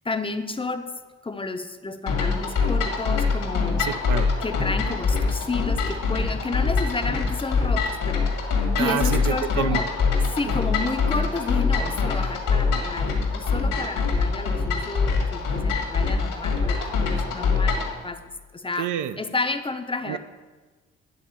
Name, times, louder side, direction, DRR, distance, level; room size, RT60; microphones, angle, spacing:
voice 1, 0.0-0.9 1.2-3.9 4.4-8.3 8.8-9.9 10.3-18.2 18.5-18.9 19.2-20.2, left 3 dB, 15° left, 9 dB, 0.6 m, -31 dB
sound 1, 2.1-17.9, left 4 dB, 75° left, 1.8 m, -24 dB
voice 2, 3.8-4.3 8.8-9.8 10.4-10.5 18.8-19.2 20.1-20.2, right 10 dB, 70° right, 12 dB, 0.5 m, -28 dB
9.8 x 3.6 x 6.9 m, 1.3 s
supercardioid pair, 65°, 32 cm